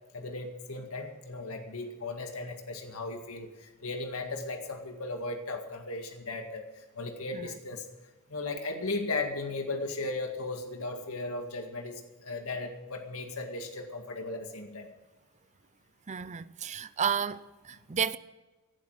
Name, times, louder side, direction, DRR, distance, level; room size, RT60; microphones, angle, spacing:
voice 1, 0.1-7.9 8.3-14.9, left 3 dB, 70° left, 2.0 m, -36 dB
voice 2, 16.1-18.2, right 7 dB, 30° right, 0.5 m, -32 dB
18.0 x 12.0 x 5.0 m
head